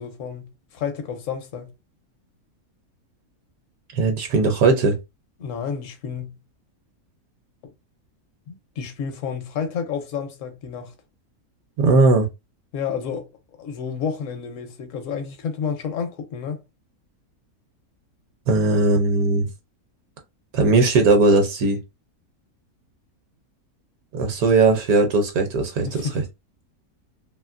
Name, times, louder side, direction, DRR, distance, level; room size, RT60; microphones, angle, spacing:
voice 1, 0.0-1.7 5.4-6.4 8.5-10.9 12.7-13.3 13.6-16.6 25.8-26.2, left 6 dB, 65° left, 1.0 m, -30 dB
voice 2, 3.9-5.0 11.8-12.3 18.5-19.5 20.5-21.8 24.1-26.2, right 3 dB, 75° right, 1.1 m, -18 dB
2.8 x 2.8 x 2.4 m
omnidirectional pair, 1.6 m